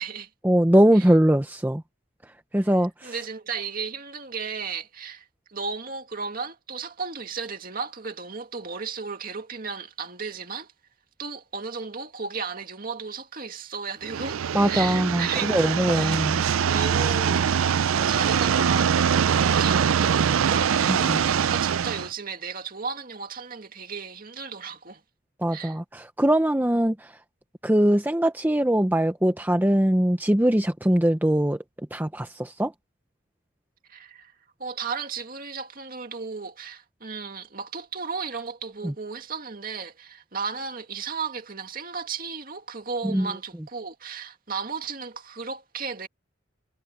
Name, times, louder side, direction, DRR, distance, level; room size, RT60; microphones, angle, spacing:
voice 1, 0.4-1.8 2.5-3.1 14.5-16.4 20.9-21.2 25.4-26.9 27.6-31.6 31.9-32.7 38.8-38.9 43.1-43.3, right 1 dB, 10° right, 0.7 m, -21 dB
voice 2, 3.0-10.7 11.2-14.4 14.7-16.4 16.7-17.5 17.9-25.0 25.5-25.8 33.9-34.3 34.6-46.1, right 5 dB, 45° right, 2.4 m, -34 dB
sound 1, 14.0-22.1, right 7 dB, 80° right, 0.4 m, -23 dB
head